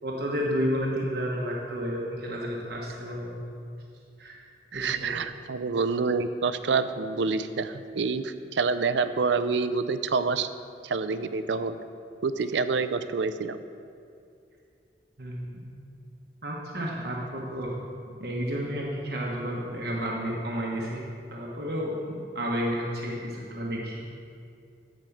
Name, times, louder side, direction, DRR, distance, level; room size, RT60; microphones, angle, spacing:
voice 1, 0.0-3.4 4.2-4.4 4.7-5.2 15.2-15.7 16.4-17.7 18.2-21.0 21.3-24.1, equal, 60° right, -3 dB, 1.2 m, -31 dB
voice 2, 4.7-10.5 10.8-11.8 12.2-13.6, right 4 dB, 85° right, 11 dB, 0.5 m, -27 dB
10.5 x 5.3 x 7.0 m, 2.4 s
head